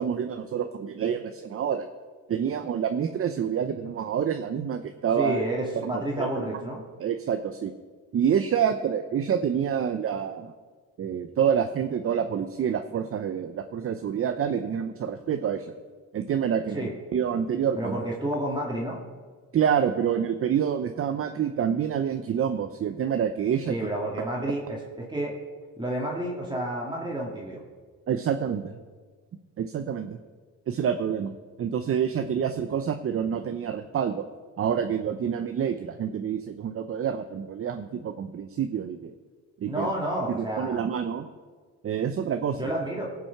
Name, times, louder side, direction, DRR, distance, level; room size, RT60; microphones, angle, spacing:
voice 1, 0.0-1.9 2.3-5.4 5.8-6.4 7.0-7.7 8.1-10.5 11.0-15.7 16.1-18.0 19.5-23.8 28.1-28.7 29.6-30.2 30.7-31.3 31.6-34.2 34.6-39.1 39.6-39.9 40.3-41.3 41.8-42.6, right 8 dB, 45° right, 7 dB, 0.7 m, -27 dB
voice 2, 5.2-6.8 16.7-16.9 17.8-19.0 23.7-25.3 25.8-27.6 39.6-40.8 42.6-43.1, right 1 dB, 15° right, -3 dB, 2.2 m, -30 dB
18.0 x 6.1 x 5.8 m, 1.5 s
cardioid pair, 90°, 30 cm